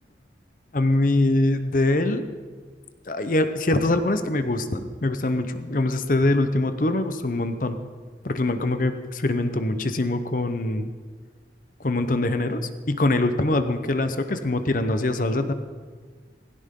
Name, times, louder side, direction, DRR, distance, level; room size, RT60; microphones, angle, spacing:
voice 1, 0.7-2.2 3.1-7.8 8.2-10.9 11.8-12.6 12.9-15.5, left 2 dB, 50° left, 9 dB, 0.8 m, -23 dB
17.0 x 16.0 x 3.8 m, 1.5 s
head